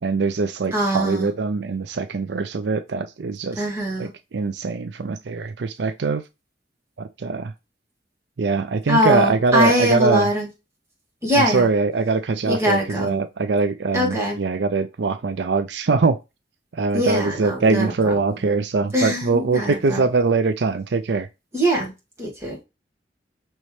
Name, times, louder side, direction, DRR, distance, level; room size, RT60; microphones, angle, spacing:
voice 1, 0.0-3.6 4.0-6.2 7.0-7.5 8.4-10.3 11.4-16.2 16.7-21.3, right 4 dB, 80° right, 0.5 m, -22 dB
voice 2, 0.7-1.3 3.6-4.1 8.9-10.5 11.2-11.7 12.5-13.1 13.9-14.4 16.9-17.9 18.9-20.0 21.5-21.9 22.2-22.6, equal, 15° right, 1.8 m, -22 dB
5.5 x 3.1 x 3.1 m
head